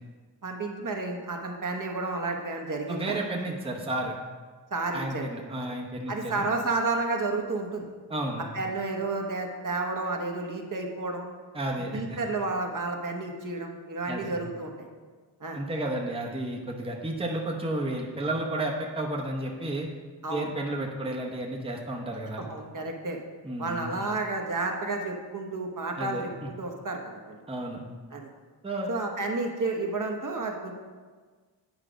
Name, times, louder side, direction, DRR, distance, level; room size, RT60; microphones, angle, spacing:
voice 1, 0.4-3.2 4.7-5.3 5.6-5.7 6.1-7.9 8.5-11.2 11.9-14.7 15.4-15.6 20.2-20.5 22.5-23.2 23.6-26.3 26.6-27.0 27.3-27.4 28.1-28.3 28.9-30.7, right 3 dB, 45° right, 1 dB, 1.1 m, -31 dB
voice 2, 2.9-4.1 4.9-6.4 8.1-8.4 11.5-12.2 14.1-14.3 15.5-19.9 20.3-22.5 23.4-23.9 26.0-26.2 27.5-27.8 28.6-28.9, right 1 dB, 15° right, 0 dB, 0.8 m, -32 dB
9.0 x 4.9 x 5.0 m, 1.5 s
wide cardioid pair, 110°, 43 cm